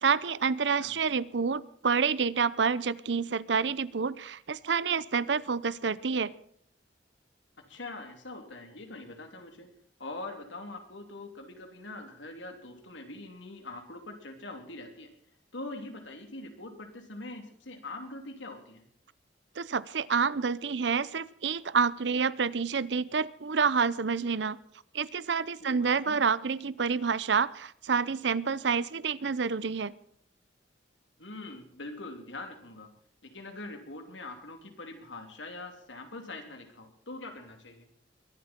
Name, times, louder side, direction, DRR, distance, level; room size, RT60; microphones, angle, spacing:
voice 1, 0.0-6.3 19.6-24.6 24.9-29.9, right 5 dB, 70° right, 19 dB, 0.7 m, -28 dB
voice 2, 7.7-9.7 10.0-15.1 15.5-18.8 25.6-26.2 31.2-32.9 33.2-37.9, left 2 dB, 90° left, 5 dB, 3.1 m, -43 dB
22.5 x 11.5 x 4.5 m, 0.66 s
head